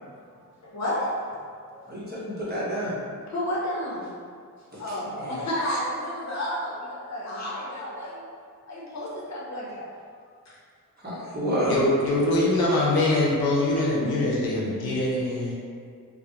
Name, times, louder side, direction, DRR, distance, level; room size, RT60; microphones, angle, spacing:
voice 1, 0.3-2.0 3.3-4.2 4.8-8.3 8.7-9.9 10.5-10.6 12.8-13.0, equal, 50° left, -6 dB, 0.7 m, -32 dB
voice 2, 1.9-3.0 5.2-5.4 11.0-11.7, equal, 25° right, -8 dB, 0.9 m, -29 dB
voice 3, 11.6-15.5, left 2 dB, 85° left, -4 dB, 0.6 m, -23 dB
2.3 x 2.1 x 2.9 m, 2.1 s
cardioid pair, 65°, 36 cm